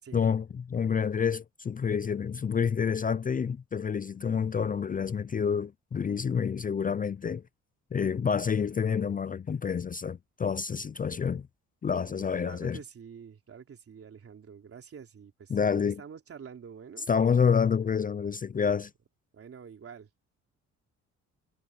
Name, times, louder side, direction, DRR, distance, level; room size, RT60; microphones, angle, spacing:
voice 1, 0.1-7.4 7.9-11.5 11.8-12.8 15.5-16.0 17.1-18.9, left 6 dB, 30° left, 0.5 m, -28 dB
voice 2, 12.0-17.1 19.3-20.1, right 7 dB, 50° right, 3.6 m, -48 dB
cardioid pair, 90°, 30 cm